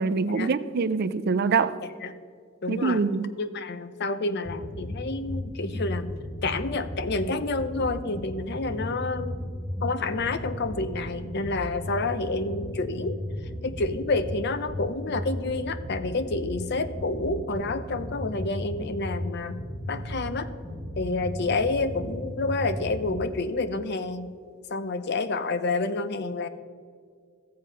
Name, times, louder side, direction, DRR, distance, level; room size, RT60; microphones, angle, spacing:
voice 1, 0.0-1.8 2.7-3.3, right 4 dB, 50° right, 14 dB, 0.5 m, -24 dB
voice 2, 2.6-3.0 3.4-6.1 6.4-9.4 9.8-13.2 13.6-19.6 19.9-20.5 21.0-24.3 24.7-26.5, left 3 dB, 55° left, 12 dB, 0.7 m, -29 dB
sound 1, 4.4-23.2, left 1 dB, ahead, 1.4 m, -35 dB
14.5 x 7.6 x 5.5 m, 2.1 s
head